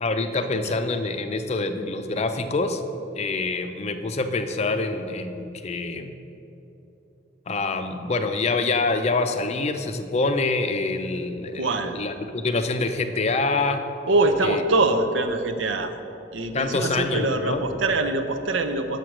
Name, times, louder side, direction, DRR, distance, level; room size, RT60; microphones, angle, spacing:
voice 1, 0.0-2.8 3.1-6.1 7.5-13.8 14.4-14.6 16.5-17.6, left 3 dB, 35° left, 7 dB, 0.4 m, -26 dB
voice 2, 11.5-12.0 14.1-15.9 16.3-19.0, right 2 dB, 85° right, 7 dB, 0.6 m, -24 dB
6.7 x 6.3 x 5.9 m, 2.9 s
head